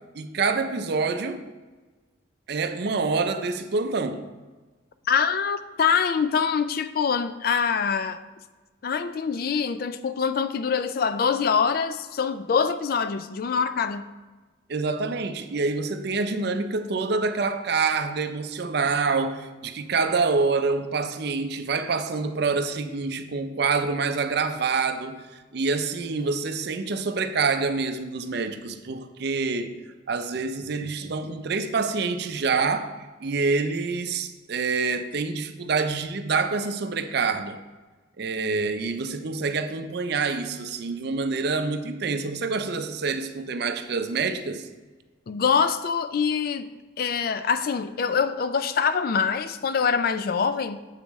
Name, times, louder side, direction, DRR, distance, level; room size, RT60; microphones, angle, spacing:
voice 1, 0.1-1.5 2.5-4.3 14.7-29.8 30.1-32.9 33.2-37.6 38.2-44.7, right 4 dB, 55° right, 9 dB, 0.5 m, -26 dB
voice 2, 5.1-8.2 8.8-14.0 45.3-46.7 47.0-50.8, left 6 dB, 50° left, 12 dB, 0.3 m, -24 dB
7.5 x 6.8 x 3.1 m, 1.3 s
head